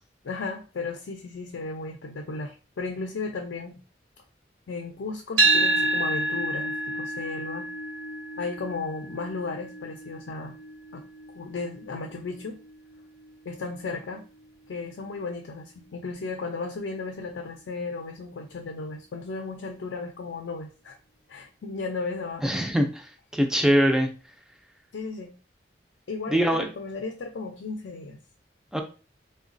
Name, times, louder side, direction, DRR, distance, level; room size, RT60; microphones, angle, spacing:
voice 1, 0.2-3.8 4.7-7.7 8.4-10.6 10.9-11.0 11.3-12.6 13.5-14.2 14.7-21.0 21.3-22.5 24.9-25.3 26.1-28.2, left 3 dB, 80° left, 3 dB, 0.4 m, -35 dB
sound 1, 5.4-13.6, right 2 dB, 65° right, 0.8 m, -29 dB
voice 2, 22.4-23.1 23.3-24.1 26.3-26.7 28.7-28.8, equal, 5° right, 4 dB, 0.3 m, -22 dB
3.7 x 2.2 x 2.5 m, 0.34 s
head